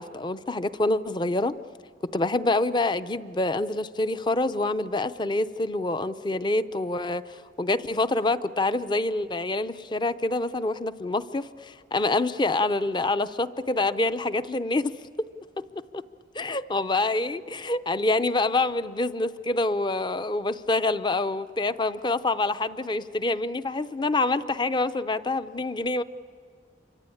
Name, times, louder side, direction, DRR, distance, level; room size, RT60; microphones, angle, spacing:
voice 1, 0.0-1.5 2.0-15.0 15.9-16.0 16.4-26.0, left 2 dB, 25° left, 13 dB, 0.6 m, -26 dB
28.0 x 24.5 x 8.6 m, 2.3 s
head